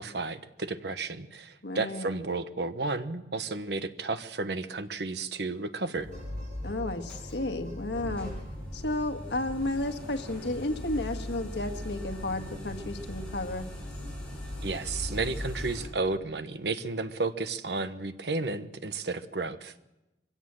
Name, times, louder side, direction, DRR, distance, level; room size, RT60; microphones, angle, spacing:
voice 1, 0.0-6.1 14.6-19.7, right 3 dB, 75° right, 11 dB, 1.1 m, -32 dB
voice 2, 1.6-2.1 6.6-8.3 8.7-13.7, left 2 dB, 90° left, 6 dB, 1.7 m, -32 dB
sound 1, 5.9-15.9, left 1 dB, 5° left, 7.8 m, -39 dB
sound 2, 5.9-9.4 10.9-11.0, right 1 dB, 45° right, 5.9 m, -54 dB
23.0 x 16.5 x 7.7 m, 0.96 s
head